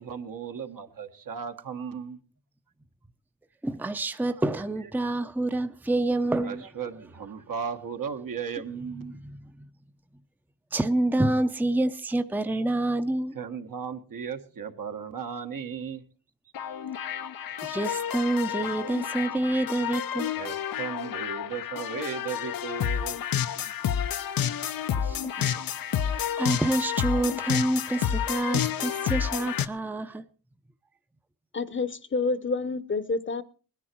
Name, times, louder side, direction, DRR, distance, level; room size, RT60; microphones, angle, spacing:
voice 1, 0.0-2.2 4.3-4.4 5.0-5.1 6.4-9.2 13.3-16.0 20.4-23.2, right 6 dB, 65° right, 1.6 m, -36 dB
voice 2, 3.6-6.6 9.1-9.7 10.7-13.3 17.6-20.3 25.0-25.5 26.0-30.2, right 2 dB, 5° right, 0.7 m, -27 dB
sound 1, 16.5-29.7, left 9 dB, 75° left, 0.8 m, -30 dB
voice 3, 31.5-33.4, left 3 dB, 35° left, 0.9 m, -28 dB
20.5 x 10.0 x 4.6 m
cardioid pair, 80°, 35 cm